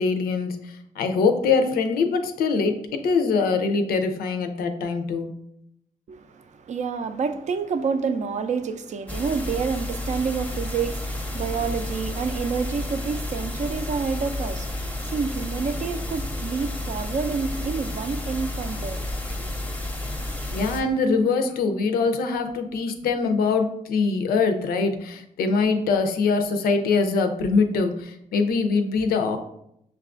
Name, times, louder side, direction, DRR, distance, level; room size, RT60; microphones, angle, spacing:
voice 1, 0.0-5.3 20.5-29.4, left 4 dB, 90° left, 0.5 m, -23 dB
voice 2, 6.1-19.0 19.4-19.5, right 5 dB, 50° right, 0.4 m, -28 dB
sound 1, 9.1-20.8, left 1 dB, 10° left, 0.6 m, -31 dB
5.5 x 2.3 x 2.4 m
cardioid pair, 65°, 15 cm